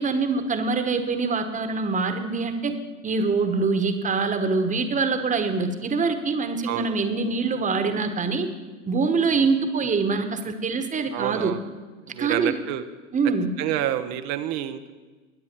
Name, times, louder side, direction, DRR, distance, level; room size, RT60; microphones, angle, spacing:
voice 1, 0.0-2.7 3.0-8.5 8.9-11.5 12.2-12.6 13.1-13.5, right 4 dB, 20° right, 8 dB, 1.3 m, -24 dB
voice 2, 6.7-7.0 11.1-11.6 12.0-12.9 13.6-14.9, right 12 dB, 40° right, 9 dB, 0.8 m, -28 dB
21.0 x 9.6 x 4.5 m, 1.3 s
figure-of-eight pair, 80°, 42 cm